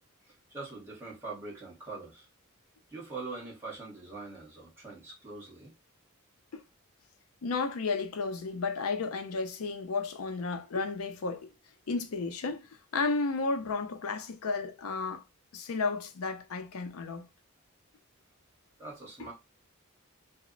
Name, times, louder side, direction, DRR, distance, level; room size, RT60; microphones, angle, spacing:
voice 1, 0.2-2.3 2.9-5.7 18.8-19.3, right 3 dB, 10° right, 1.0 m, -43 dB
voice 2, 7.4-11.5 11.9-15.2 15.5-17.3, left 4 dB, 80° left, 0.5 m, -33 dB
2.0 x 2.0 x 3.7 m
head